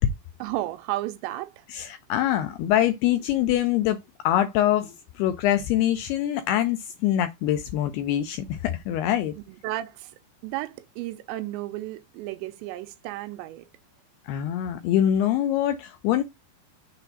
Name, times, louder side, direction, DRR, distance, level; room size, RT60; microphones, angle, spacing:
voice 1, 0.4-1.7 9.5-10.1 10.4-13.7, right 15 dB, 85° right, 3.0 m, -33 dB
voice 2, 1.7-4.0 4.2-9.4 14.3-16.2, left 12 dB, 85° left, 2.3 m, -24 dB
6.7 x 2.5 x 5.6 m
omnidirectional pair, 5.1 m